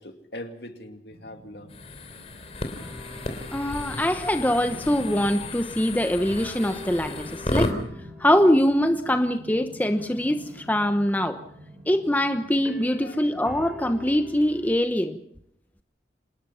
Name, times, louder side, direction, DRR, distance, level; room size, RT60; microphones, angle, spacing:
voice 1, 0.0-1.8 3.3-3.9 13.0-13.3, left 1 dB, 65° left, 5 dB, 2.5 m, -42 dB
sound 1, 1.1-13.7, left 1 dB, 80° right, 6.3 m, -47 dB
sound 2, 1.7-7.7, left 2 dB, 35° left, 3.0 m, -33 dB
sound 3, 2.7-5.9 6.2-14.8, left 2 dB, 5° right, 3.0 m, -47 dB
voice 2, 3.5-7.7 8.2-11.4 11.9-15.2, left 1 dB, 10° left, 7 dB, 0.9 m, -23 dB
26.5 x 19.5 x 5.8 m, 0.69 s
head